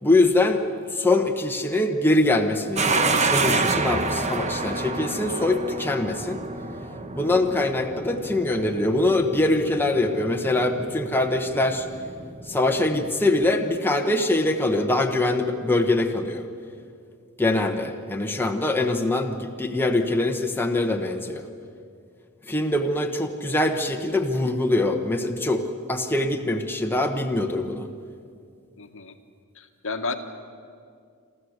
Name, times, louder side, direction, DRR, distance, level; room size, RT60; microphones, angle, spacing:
voice 1, 0.0-0.6 0.9-6.4 7.1-11.9 12.5-16.4 17.4-21.4 22.5-25.6 25.9-27.9, left 2 dB, 10° left, 3 dB, 1.1 m, -23 dB
sound 1, 2.8-13.5, right 3 dB, 30° right, 1.1 m, -29 dB
voice 2, 28.8-29.1 29.5-30.1, left 4 dB, 65° left, 6 dB, 1.4 m, -32 dB
27.5 x 13.5 x 8.0 m, 2.3 s
head